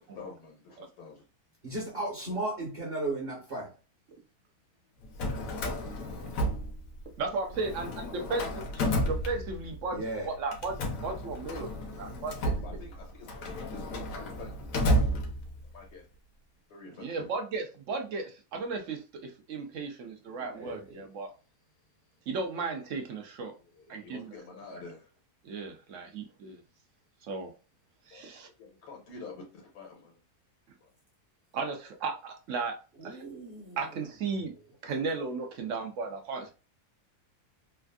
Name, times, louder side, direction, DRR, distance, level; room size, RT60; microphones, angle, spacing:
voice 1, 0.1-1.2 12.6-15.3 15.7-16.1 16.7-17.2 23.6-25.1 28.1-28.3 28.6-30.2 30.8-30.9, left 4 dB, 80° left, 1.5 m, -48 dB
voice 2, 1.6-3.7 9.9-10.3 20.5-20.8 33.0-33.8 34.8-35.0, right 2 dB, 45° right, 1.1 m, -35 dB
Drawer open or close, 5.0-7.2 7.5-9.9 10.5-15.8, equal, 65° left, 1.0 m, -32 dB
voice 3, 7.2-11.7 12.0-12.5 17.0-21.3 22.3-23.5 23.9-24.3 24.7-24.8 25.4-26.6 27.2-27.5 28.1-28.5 31.5-32.8 33.0-33.2 33.8-34.5 34.8-36.5, right 4 dB, 65° right, 0.8 m, -35 dB
3.3 x 2.4 x 2.3 m
omnidirectional pair, 1.6 m